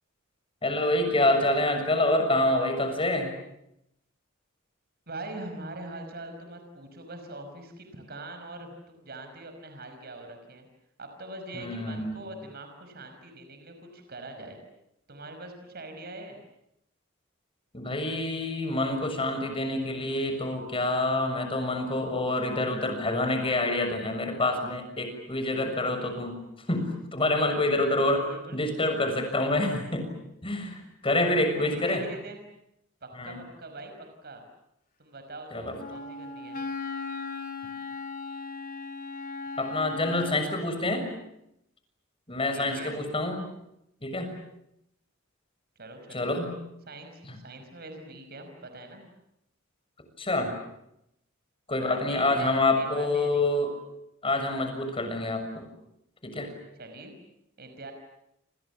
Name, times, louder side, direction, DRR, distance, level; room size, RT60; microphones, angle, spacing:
voice 1, 0.6-3.3 11.5-12.3 17.7-26.4 26.7-28.2 28.5-30.1 30.4-32.0 33.1-33.4 35.5-35.7 39.6-41.1 42.3-43.4 44.0-44.3 46.1-46.5 47.2-47.4 50.2-50.5 51.7-53.7 54.2-55.6 56.2-56.5, left 2 dB, 30° left, 6 dB, 6.9 m, -27 dB
voice 2, 5.1-10.6 11.0-14.6 15.1-16.4 28.0-28.6 30.8-32.4 33.0-34.4 35.0-36.6 40.1-40.4 42.5-43.0 45.8-46.3 46.9-49.0 51.8-53.5 56.8-57.1 57.6-57.9, right 2 dB, 50° right, 6 dB, 5.6 m, -43 dB
Wind instrument woodwind instrument, 35.8-40.6, left 4 dB, 45° left, 3.0 m, -37 dB
29.0 x 27.5 x 7.2 m, 0.81 s
head